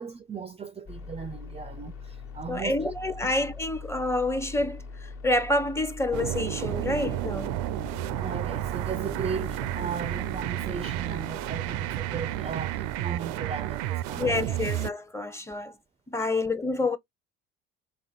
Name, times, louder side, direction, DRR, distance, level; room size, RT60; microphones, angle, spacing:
voice 1, 0.0-2.9 3.2-3.3 8.2-14.3 16.2-16.4, right 5 dB, 20° right, 0.4 m, -37 dB
sound 1, 0.9-13.9, left 3 dB, 50° left, 1.3 m, -43 dB
voice 2, 2.5-7.6 14.1-15.8 16.1-17.0, left 2 dB, 10° left, 0.8 m, -28 dB
sound 2, 6.1-14.9, right 15 dB, 75° right, 0.5 m, -31 dB
4.3 x 3.4 x 3.7 m
supercardioid pair, 85°, 30 cm